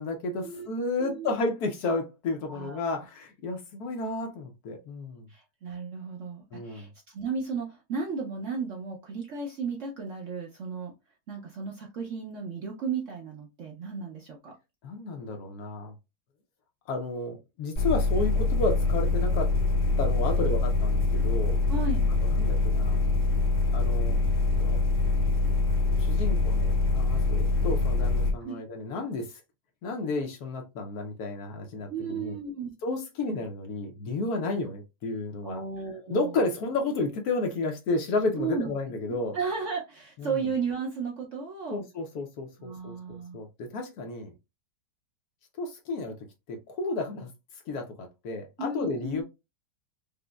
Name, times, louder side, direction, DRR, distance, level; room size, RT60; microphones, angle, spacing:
voice 1, 0.0-5.3 6.5-6.9 14.8-15.9 16.9-19.6 20.0-21.6 22.2-23.0 23.7-24.2 24.6-24.8 26.0-29.4 29.8-32.4 32.8-35.6 36.1-39.4 40.2-40.5 41.7-44.3 45.6-46.2 46.5-49.2, left 2 dB, 70° left, 1.0 m, -32 dB
voice 2, 2.5-2.9 5.3-10.9 11.3-14.5 21.7-22.0 28.4-28.6 31.9-32.7 35.4-36.3 38.4-38.7 39.1-41.8 42.6-43.4 48.6-49.2, right 4 dB, 65° right, 0.8 m, -34 dB
sound 1, 17.8-28.3, left 3 dB, 40° left, 1.1 m, -24 dB
5.0 x 2.0 x 2.2 m
omnidirectional pair, 1.9 m